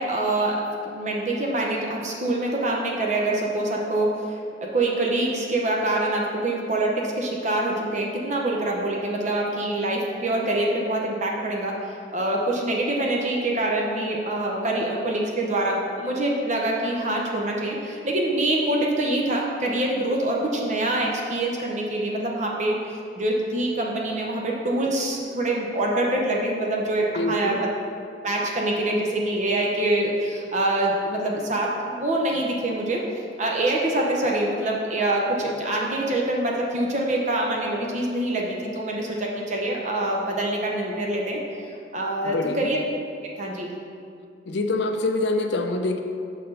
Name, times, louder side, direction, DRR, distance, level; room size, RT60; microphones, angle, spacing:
voice 1, 0.0-22.8 23.1-27.7 28.2-33.0 33.4-42.8 43.4-43.7, right 1 dB, 40° right, -1 dB, 0.7 m, -25 dB
voice 2, 27.1-27.6 42.2-42.7 44.5-46.0, left 2 dB, 65° left, 5 dB, 0.5 m, -25 dB
6.4 x 4.1 x 5.5 m, 2.4 s
head